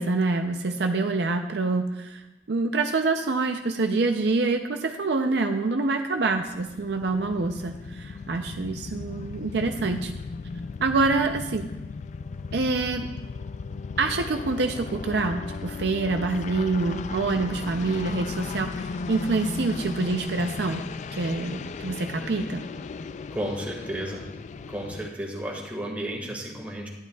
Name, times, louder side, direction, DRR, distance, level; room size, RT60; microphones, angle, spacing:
voice 1, 0.0-2.2 2.5-10.1 10.8-11.7 12.5-13.1 14.0-20.8 21.1-22.6, right 3 dB, 65° right, 5 dB, 0.6 m, -26 dB
sound 1, 6.3-25.1, left 4 dB, 40° left, 0.3 m, -36 dB
voice 2, 23.3-24.2 24.7-26.9, right 1 dB, 10° right, -2 dB, 2.0 m, -33 dB
11.5 x 11.0 x 2.3 m, 0.99 s
head